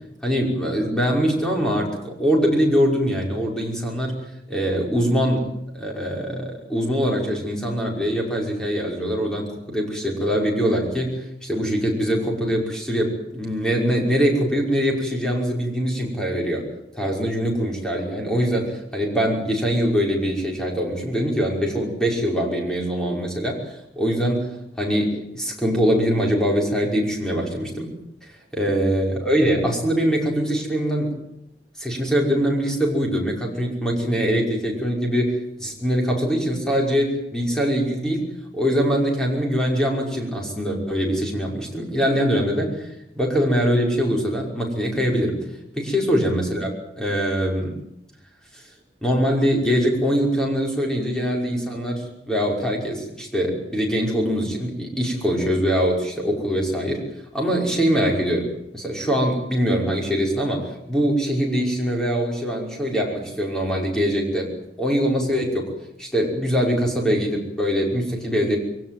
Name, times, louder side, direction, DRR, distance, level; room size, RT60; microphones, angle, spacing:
voice 1, 0.2-4.2 4.5-5.5 5.7-16.7 16.9-27.9 28.5-31.1 31.8-38.3 38.5-45.5 45.7-47.7 48.5-48.6 49.0-57.0 57.3-64.5 64.8-65.7 66.0-68.6, equal, 5° left, -1 dB, 5.6 m, -23 dB
23.5 x 17.0 x 9.4 m, 0.81 s
head